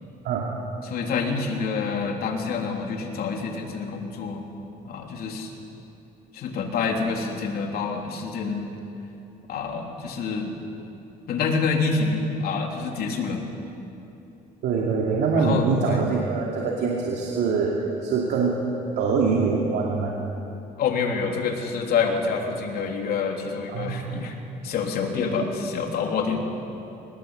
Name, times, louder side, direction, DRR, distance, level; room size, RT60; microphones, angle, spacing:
voice 1, 0.8-4.4 4.8-5.5 6.3-8.7 9.5-10.5 11.3-13.4 15.3-16.0 20.8-24.4 24.6-26.4, left 5 dB, 65° left, 2 dB, 3.3 m, -27 dB
voice 2, 14.6-18.6 19.0-20.1 23.7-24.3 25.4-25.5, right 4 dB, 75° right, -2 dB, 2.7 m, -24 dB
21.5 x 19.0 x 8.2 m, 2.9 s
cardioid pair, 110°, 17 cm